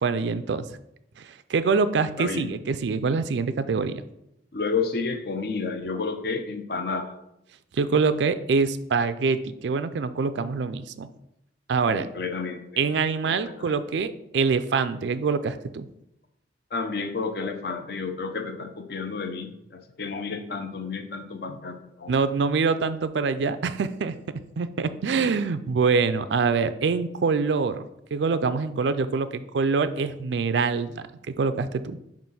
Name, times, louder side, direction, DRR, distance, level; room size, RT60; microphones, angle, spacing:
voice 1, 0.0-0.6 1.2-4.0 7.7-11.1 11.7-12.1 12.8-15.9 22.1-24.2 24.6-31.0 31.4-32.0, right 5 dB, 75° right, 12 dB, 0.4 m, -25 dB
voice 2, 2.2-2.5 4.5-7.1 11.9-12.9 13.2-13.7 16.7-22.2, left 4 dB, 60° left, 6 dB, 0.6 m, -31 dB
7.5 x 2.5 x 5.4 m, 0.81 s
head